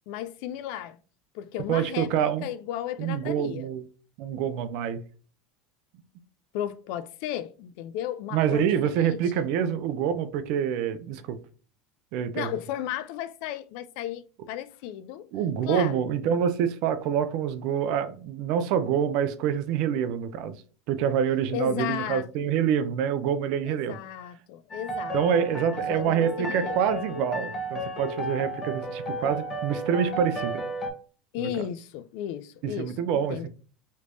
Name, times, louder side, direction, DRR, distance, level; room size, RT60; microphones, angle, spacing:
voice 1, 0.1-1.0 1.3-3.7 6.5-9.5 12.3-15.3 15.6-16.0 21.5-22.3 23.6-25.2 25.7-26.8 31.3-33.5, left 11 dB, 70° left, 0.3 m, -35 dB
voice 2, 1.7-2.5 3.0-3.8 4.2-5.0 8.3-11.4 12.1-12.5 15.3-20.6 20.9-24.0 25.1-30.6 31.4-31.5 32.8-33.5, right 8 dB, 65° right, 0.5 m, -26 dB
sound 1, 24.7-30.9, right 1 dB, 30° left, 1.3 m, -33 dB
3.2 x 3.1 x 2.6 m
supercardioid pair, 100°, 0 cm